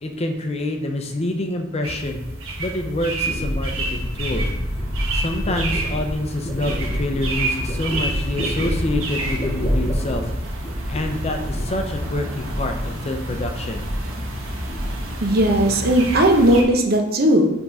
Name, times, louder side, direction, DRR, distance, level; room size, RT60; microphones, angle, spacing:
voice 1, 0.0-2.2 2.6-4.5 5.1-10.3 10.9-13.9, left 1 dB, 30° left, 4 dB, 0.6 m, -26 dB
sound 1, 1.8-16.6, right 2 dB, 90° right, 1.4 m, -30 dB
sound 2, 3.3-12.9 13.2-14.1 14.4-15.2 15.5-16.0, equal, 10° left, 1.5 m, -28 dB
voice 2, 15.2-17.5, right 1 dB, 50° right, 3 dB, 0.8 m, -17 dB
5.9 x 3.6 x 5.4 m, 0.98 s
head